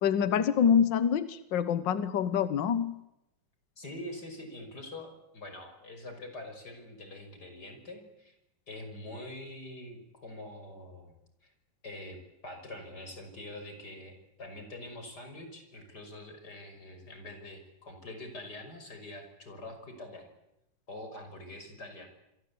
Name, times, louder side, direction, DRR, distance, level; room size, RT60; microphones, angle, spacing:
voice 1, 0.0-2.9, left 8 dB, 70° left, 13 dB, 1.1 m, -26 dB
voice 2, 3.8-8.3 8.7-11.2 11.4-11.5 11.8-20.3 20.9-22.1, left 1 dB, 30° left, 6 dB, 6.2 m, -45 dB
28.5 x 23.0 x 8.5 m, 0.86 s
omnidirectional pair, 3.7 m